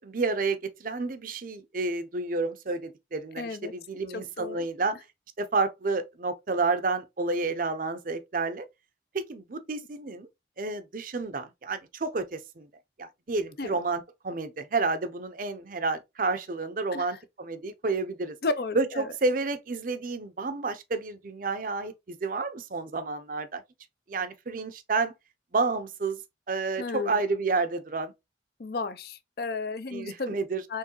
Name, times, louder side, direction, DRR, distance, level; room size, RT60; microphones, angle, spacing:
voice 1, 0.0-5.0 5.4-8.6 9.1-10.3 10.6-12.7 13.0-18.4 18.7-23.6 24.1-25.1 25.5-26.2 26.5-28.1 29.9-30.6, right 3 dB, 50° right, 0.6 m, -30 dB
voice 2, 3.4-3.7 4.1-4.7 13.6-13.8 16.9-17.1 18.4-19.1 26.8-27.2 28.6-30.4 30.7-30.8, left 3 dB, 55° left, 0.5 m, -33 dB
4.6 x 3.2 x 3.0 m
head